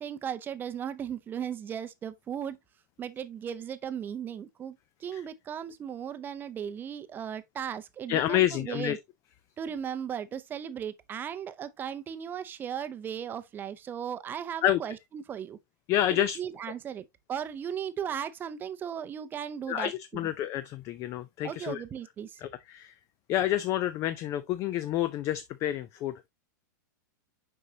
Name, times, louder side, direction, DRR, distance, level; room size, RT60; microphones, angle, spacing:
voice 1, 0.0-2.6 3.0-9.0 9.6-15.6 16.1-20.3 21.4-22.4, right 8 dB, 20° right, 0.6 m, -36 dB
voice 2, 8.1-9.0 14.6-14.8 15.9-16.4 19.7-21.8 22.4-22.9 23.3-26.3, left 12 dB, 30° left, 0.4 m, -29 dB
6.5 x 5.4 x 2.7 m
supercardioid pair, 145°, 10 cm